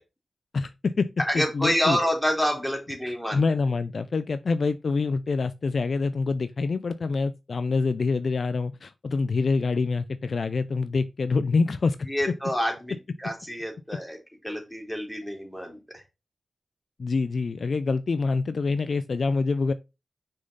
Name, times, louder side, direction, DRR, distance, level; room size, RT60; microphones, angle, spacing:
voice 1, 0.5-1.1 1.3-2.0 3.0-12.0 17.0-19.7, left 4 dB, 65° left, 0.5 m, -26 dB
voice 2, 1.3-3.4 12.0-14.2 14.4-16.0, equal, 5° left, 3.8 m, -28 dB
6.5 x 5.6 x 4.0 m
cardioid pair, 55°, 0 cm